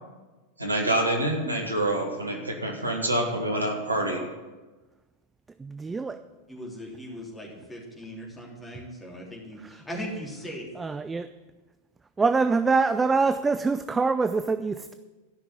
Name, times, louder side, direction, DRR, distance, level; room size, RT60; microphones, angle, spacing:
voice 1, 0.6-4.2, right 1 dB, 80° right, 2 dB, 1.9 m, -26 dB
voice 2, 5.6-6.2 10.8-11.3 12.2-14.9, right 4 dB, 15° right, 11 dB, 0.4 m, -24 dB
voice 3, 6.5-10.7, equal, 10° left, -3 dB, 3.4 m, -39 dB
13.0 x 6.0 x 8.5 m, 1.2 s
figure-of-eight pair, 90°, 0 cm